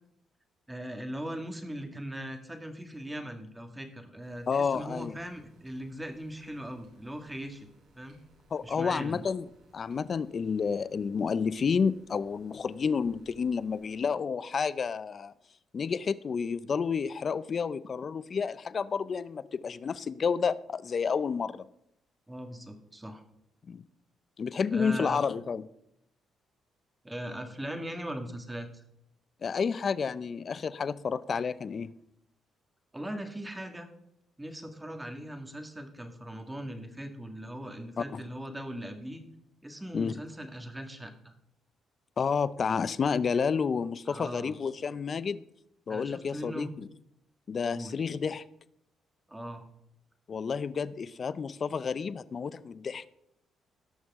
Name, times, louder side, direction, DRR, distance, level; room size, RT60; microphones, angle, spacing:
voice 1, 0.7-7.7 8.0-8.2 8.6-9.2 22.3-23.2 24.7-25.2 27.0-28.8 32.9-33.9 34.4-39.2 39.6-41.3 44.1-44.5 45.9-46.7 47.7-47.9 49.3-49.7, equal, 10° right, 5 dB, 1.8 m, -39 dB
sound 1, 4.2-14.0, right 1 dB, 75° right, 4.3 m, -63 dB
voice 2, 4.5-5.2 8.5-9.5 9.7-15.3 15.7-21.6 23.7-23.8 24.4-25.7 29.4-31.9 38.0-38.2 39.9-40.1 42.2-45.4 45.9-46.9 47.5-48.4 50.3-53.0, left 6 dB, 45° left, 16 dB, 0.5 m, -30 dB
18.0 x 6.4 x 3.6 m, 0.79 s
cardioid pair, 90°, 0 cm